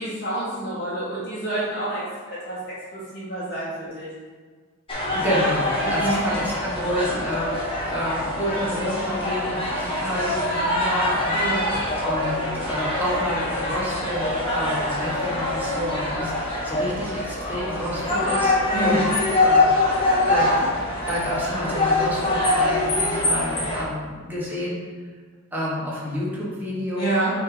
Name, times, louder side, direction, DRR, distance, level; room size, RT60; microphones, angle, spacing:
voice 1, 0.0-2.0 2.3-4.1 5.8-6.2 11.3-11.7 18.7-19.0 27.0-27.3, right 2 dB, 50° left, -11 dB, 1.8 m, -28 dB
sound 1, 4.9-23.8, left 2 dB, 25° left, 1.2 m, -24 dB
voice 2, 5.1-11.7 12.0-18.5 18.8-19.1 19.4-20.7 21.1-24.8 25.5-27.1, equal, 10° right, -7 dB, 1.3 m, -29 dB
5.6 x 3.4 x 5.1 m, 1.5 s
head